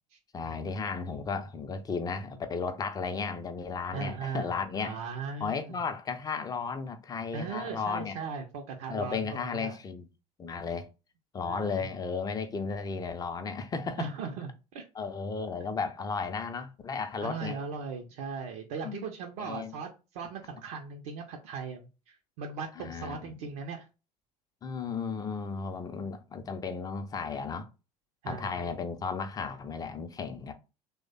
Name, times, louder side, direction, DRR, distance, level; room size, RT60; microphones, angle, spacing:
voice 1, 0.3-5.0 5.4-8.2 8.9-10.1 10.4-10.9 11.3-14.1 14.9-17.6 18.8-19.1 19.4-19.8 22.8-23.3 24.6-27.7 28.3-30.5, left 5 dB, 20° left, 0.5 m, -34 dB
voice 2, 3.9-4.6 4.8-5.8 7.3-9.2 9.5-9.8 11.4-11.9 14.0-14.8 17.2-23.9 28.2-28.7, right 5 dB, 55° right, 0.5 m, -38 dB
3.1 x 2.1 x 3.9 m
figure-of-eight pair, 70°, 21 cm